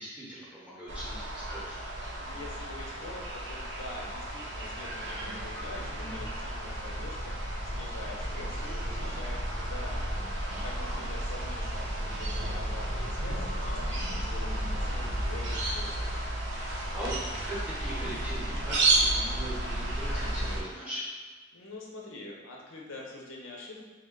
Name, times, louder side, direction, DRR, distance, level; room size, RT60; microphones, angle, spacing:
voice 1, 0.0-1.8 10.5-11.0 16.5-17.1 17.4-21.0, equal, 5° right, -8 dB, 0.8 m, -40 dB
sound 1, 0.9-20.6, right 1 dB, 60° right, 0.6 m, -32 dB
voice 2, 2.2-10.2 10.6-16.2 21.5-23.8, left 2 dB, 75° left, -2 dB, 0.6 m, -45 dB
3.2 x 2.2 x 3.6 m, 1.3 s
head